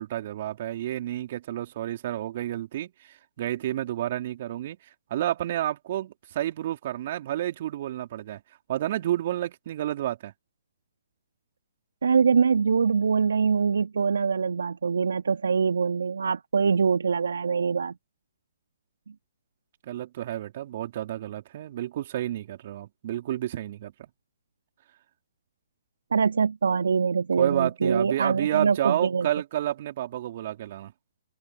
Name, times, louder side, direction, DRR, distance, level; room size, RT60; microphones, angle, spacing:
voice 1, 0.0-4.8 5.1-8.4 8.7-10.3 19.8-23.9 27.4-30.9, right 13 dB, 50° right, 3.6 m, -30 dB
voice 2, 12.0-17.9 26.1-29.3, right 5 dB, 75° right, 2.0 m, -24 dB
open air
figure-of-eight pair, 130°, 0 cm